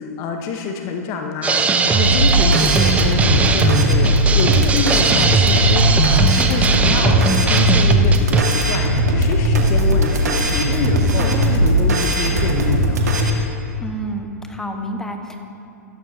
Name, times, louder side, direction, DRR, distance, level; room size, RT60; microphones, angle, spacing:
voice 1, 0.0-13.0, left 5 dB, 35° left, 4 dB, 1.0 m, -27 dB
sound 1, 1.4-8.4, right 4 dB, 15° right, 0.7 m, -18 dB
sound 2, 2.1-13.3, equal, 75° right, 1.7 m, -18 dB
voice 2, 11.2-11.6 13.8-15.4, right 1 dB, 5° left, 4 dB, 1.2 m, -29 dB
15.5 x 14.0 x 2.8 m, 2.8 s
figure-of-eight pair, 105°, 9 cm